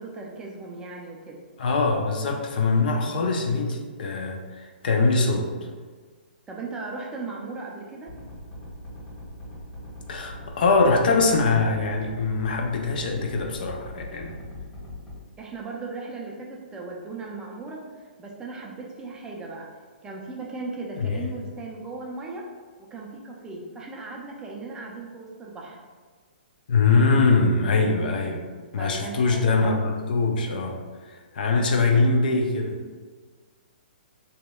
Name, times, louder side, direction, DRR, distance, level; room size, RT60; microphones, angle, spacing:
voice 1, 0.0-1.4 6.5-8.1 15.4-19.7 20.0-22.4 22.9-25.8 28.7-29.8, right 3 dB, 15° right, -2 dB, 0.3 m, -37 dB
voice 2, 1.6-5.5 10.1-14.4 21.0-21.3 26.7-28.4 28.7-30.8 31.0-32.8, left 3 dB, 60° left, 2 dB, 0.4 m, -23 dB
sound 1, 8.1-15.2, left 1 dB, 25° left, 1.3 m, -40 dB
2.7 x 2.1 x 2.2 m, 1.5 s
hypercardioid pair, 125°, 6 cm